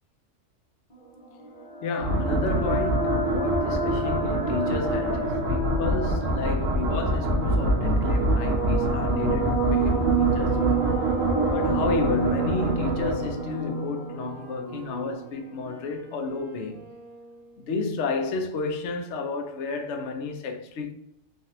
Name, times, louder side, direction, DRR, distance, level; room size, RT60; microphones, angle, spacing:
sound 1, 1.2-15.3, right 3 dB, 35° left, 0.8 m, -29 dB
voice 1, 1.8-10.8 11.5-16.9 17.6-20.9, left 4 dB, 70° left, 0.8 m, -31 dB
sound 2, 2.0-13.7, right 1 dB, 80° right, 1.1 m, -26 dB
Wind instrument woodwind instrument, 9.7-18.2, right 2 dB, 25° right, 0.7 m, -47 dB
3.2 x 2.4 x 2.7 m
omnidirectional pair, 1.3 m